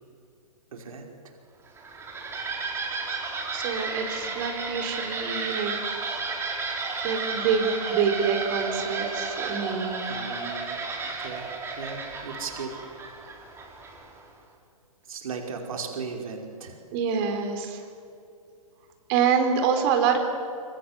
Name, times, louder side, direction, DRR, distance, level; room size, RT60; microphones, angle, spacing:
voice 1, 0.7-1.3 10.1-11.5 11.8-12.7 15.1-16.8, right 5 dB, 65° right, 2 dB, 5.1 m, -37 dB
sound 1, 1.7-14.2, right 4 dB, 15° right, 4.6 m, -33 dB
voice 2, 3.5-5.7 7.0-10.1 16.9-17.8 19.1-20.2, right 6 dB, 35° right, 5 dB, 4.2 m, -26 dB
26.5 x 26.0 x 8.1 m, 2.5 s
hypercardioid pair, 130°, 19 cm